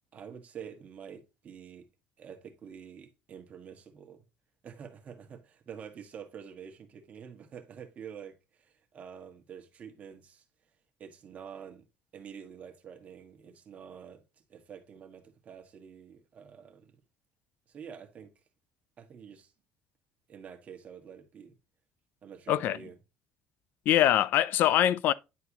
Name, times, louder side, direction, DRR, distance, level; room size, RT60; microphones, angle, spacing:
voice 1, 0.1-1.9 2.2-4.2 4.6-10.4 11.0-11.8 12.1-14.2 14.5-17.0 17.7-18.3 19.0-19.5 20.3-21.6 22.2-23.0, right 7 dB, 40° right, 1.5 m, -47 dB
voice 2, 23.9-25.1, left 12 dB, 60° left, 0.4 m, -23 dB
9.8 x 4.6 x 3.0 m
cardioid pair, 130°, 4 cm